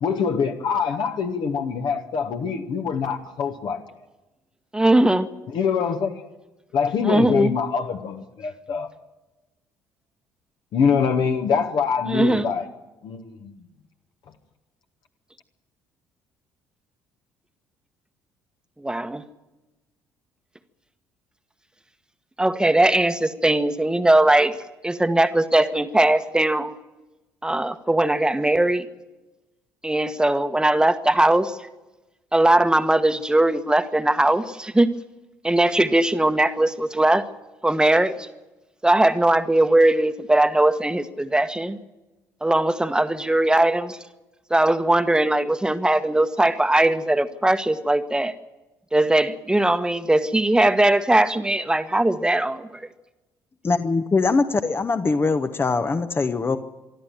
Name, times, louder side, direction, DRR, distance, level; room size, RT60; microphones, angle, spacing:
voice 1, 0.0-3.8 5.5-6.3 6.7-8.9 10.7-12.6 13.0-13.5, left 6 dB, 50° left, 1.6 m, -24 dB
voice 2, 4.7-5.3 7.0-7.5 12.1-12.5 18.8-19.2 22.4-24.6 24.8-26.7 27.4-28.9 29.8-31.6 32.3-34.9 35.4-37.2 37.6-38.1 38.8-41.8 42.4-44.0 44.5-48.3 48.9-52.8, right 1 dB, 10° right, 1.3 m, -20 dB
voice 3, 53.6-56.6, left 4 dB, 25° left, 1.1 m, -22 dB
24.5 x 13.0 x 9.1 m
figure-of-eight pair, 50°, 10 cm